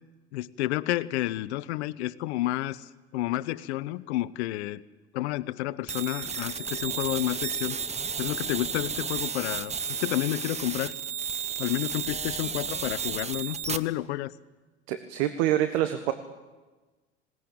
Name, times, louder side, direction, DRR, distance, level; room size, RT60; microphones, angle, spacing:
voice 1, 0.3-4.8 5.1-7.8 8.2-10.9 11.6-14.3, left 16 dB, 70° left, 17 dB, 1.0 m, -30 dB
sound 1, 5.9-13.8, right 6 dB, 20° right, 1.0 m, -33 dB
sound 2, 6.1-13.7, left 3 dB, 20° left, 5.5 m, -54 dB
voice 2, 14.9-16.1, right 12 dB, 65° right, 9 dB, 1.6 m, -26 dB
20.0 x 18.5 x 8.7 m, 1.2 s
hypercardioid pair, 85°, 35 cm